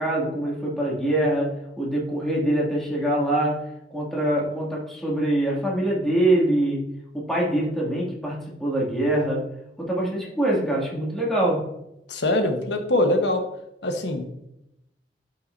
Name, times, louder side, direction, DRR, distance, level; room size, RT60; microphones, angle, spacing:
voice 1, 0.0-3.6 3.9-6.9 7.1-9.5 9.8-11.7, right 1 dB, ahead, -5 dB, 2.4 m, -24 dB
voice 2, 12.1-13.4 13.8-14.3, left 1 dB, 85° left, 5 dB, 1.2 m, -23 dB
11.5 x 5.6 x 2.7 m, 0.84 s
head